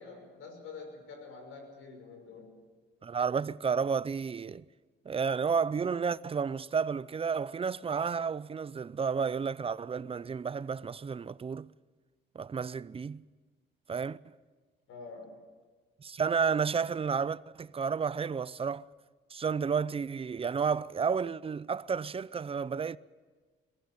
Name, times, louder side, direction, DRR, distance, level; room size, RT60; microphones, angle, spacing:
voice 1, 0.0-2.5 14.9-15.3, left 4 dB, 90° left, 5.9 m, -47 dB
voice 2, 3.0-4.6 5.1-11.7 12.3-13.2 13.9-14.2 16.0-18.9 19.3-23.0, right 6 dB, 30° right, 0.6 m, -31 dB
22.5 x 15.5 x 9.0 m
cardioid pair, 90°, 20 cm